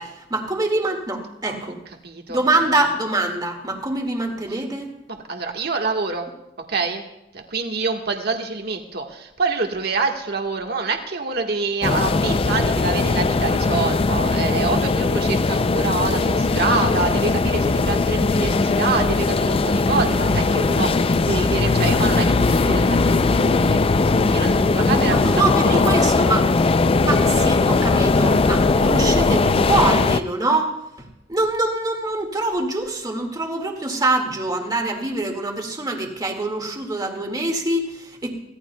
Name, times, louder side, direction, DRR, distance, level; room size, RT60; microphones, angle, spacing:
voice 1, 0.0-1.8 2.3-4.9 24.7-26.5 27.0-30.7 31.3-38.3, right 2 dB, 20° right, 2 dB, 2.0 m, -24 dB
voice 2, 2.0-2.4 4.5-4.6 5.1-6.3 6.7-7.0 7.3-23.8 24.3-25.4 25.7-25.8, right 4 dB, 60° right, 3 dB, 1.5 m, -26 dB
sound 1, 11.8-30.2, left 3 dB, 30° left, 0.4 m, -19 dB
25.0 x 17.0 x 2.3 m, 0.85 s
head